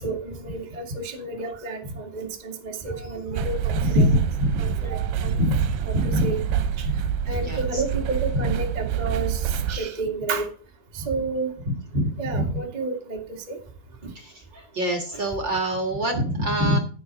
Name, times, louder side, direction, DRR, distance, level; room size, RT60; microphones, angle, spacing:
voice 1, 0.0-4.0 4.6-5.3 5.9-6.0 6.2-6.4 6.8-6.9 7.3-9.4 9.7-10.4 10.9-11.5 12.2-13.2 13.5-13.6, right 3 dB, 20° right, 1 dB, 1.1 m, -30 dB
sound 1, 3.3-9.8, right 9 dB, 75° right, 2.3 m, -27 dB
voice 2, 3.8-4.9 5.2-6.4 6.8-7.0 7.4-7.8 8.3-8.5 10.9-11.1 11.6-12.6 14.1-16.8, equal, 45° right, 3 dB, 1.7 m, -25 dB
15.5 x 6.1 x 4.0 m, 0.42 s
omnidirectional pair, 4.2 m